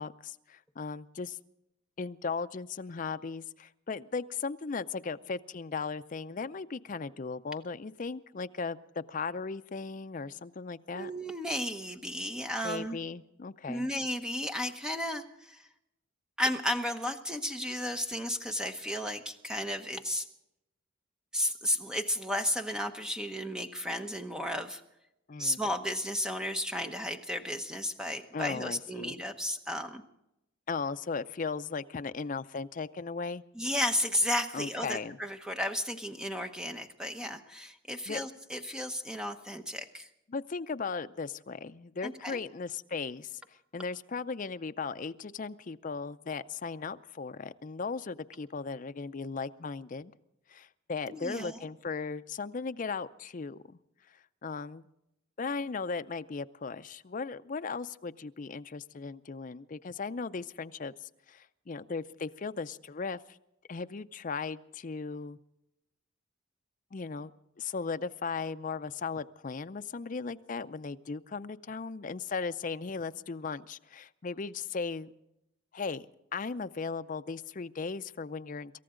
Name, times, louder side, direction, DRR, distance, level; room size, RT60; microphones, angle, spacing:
voice 1, 0.0-1.4 2.0-11.1 12.6-13.9 25.3-25.6 28.3-29.1 30.7-33.4 34.5-35.2 38.1-38.2 40.3-50.1 50.5-53.8 54.4-54.9 55.4-63.4 63.7-65.4 66.9-67.3 67.6-75.1 75.7-76.1 76.3-78.8, left 4 dB, 40° left, 11 dB, 0.5 m, -37 dB
voice 2, 10.9-13.0 13.7-15.7 16.4-20.3 21.3-24.8 25.4-30.0 33.5-40.1 42.0-42.4 51.1-51.6, left 1 dB, 5° right, 6 dB, 0.9 m, -33 dB
26.5 x 14.5 x 3.8 m, 0.85 s
head